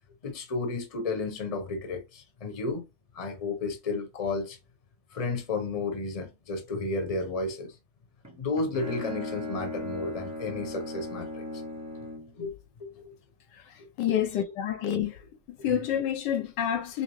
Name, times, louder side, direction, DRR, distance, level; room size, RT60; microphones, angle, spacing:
voice 1, 0.2-2.8 3.1-4.6 5.1-7.8 8.4-11.5 12.3-13.1 13.8-14.2, left 3 dB, 25° left, 0.9 m, -33 dB
Bowed string instrument, 8.2-12.4, left 1 dB, 20° right, 0.4 m, -37 dB
voice 2, 13.7-15.2 15.5-17.0, left 9 dB, 75° left, 1.3 m, -28 dB
5.9 x 2.0 x 3.1 m
omnidirectional pair, 1.9 m